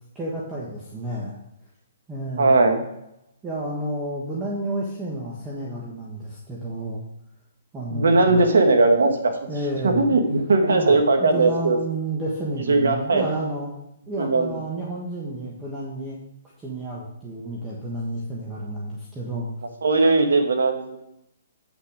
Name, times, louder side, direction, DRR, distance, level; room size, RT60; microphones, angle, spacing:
voice 1, 0.1-1.4 2.1-2.6 3.4-7.0 7.7-8.4 9.5-10.1 10.7-13.8 14.1-16.2 16.6-19.5, right 1 dB, 15° right, -5 dB, 1.3 m, -31 dB
voice 2, 2.4-2.8 7.9-9.3 9.8-11.8 12.7-13.2 14.2-14.5 19.8-21.0, right 3 dB, 90° right, 5 dB, 1.6 m, -19 dB
8.3 x 5.9 x 4.9 m, 0.81 s
hypercardioid pair, 155°, 0 cm